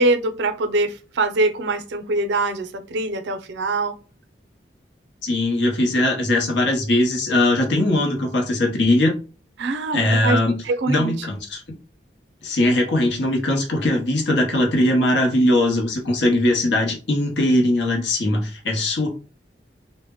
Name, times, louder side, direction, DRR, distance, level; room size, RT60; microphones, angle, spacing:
voice 1, 0.0-4.0 9.6-10.4 10.6-11.1, right 2 dB, 85° right, 0.5 m, -23 dB
voice 2, 5.2-9.1 9.9-10.6 10.8-11.6 12.4-19.1, left 1 dB, 85° left, 0.8 m, -20 dB
2.1 x 2.0 x 3.5 m
head